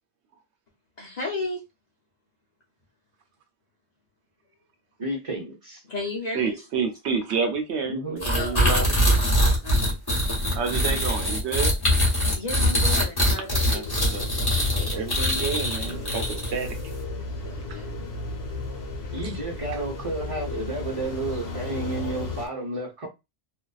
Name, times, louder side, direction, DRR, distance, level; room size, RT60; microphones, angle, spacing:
voice 1, 1.0-1.6 5.9-6.6 8.3-8.8 9.6-9.9 12.3-14.0 17.4-17.9, left 2 dB, 45° left, 0.7 m, -34 dB
voice 2, 5.0-5.8 7.8-8.3 19.1-23.1, right 2 dB, 35° right, 0.6 m, -31 dB
voice 3, 6.3-9.2 10.5-11.8 13.7-13.8 14.1-16.8 17.7-17.8 19.7-19.8, right 5 dB, 75° right, 0.8 m, -29 dB
sound 1, 8.2-16.7, equal, 20° left, 0.9 m, -23 dB
sound 2, 13.8-22.5, left 3 dB, 60° left, 1.0 m, -34 dB
2.5 x 2.2 x 2.3 m
omnidirectional pair, 1.2 m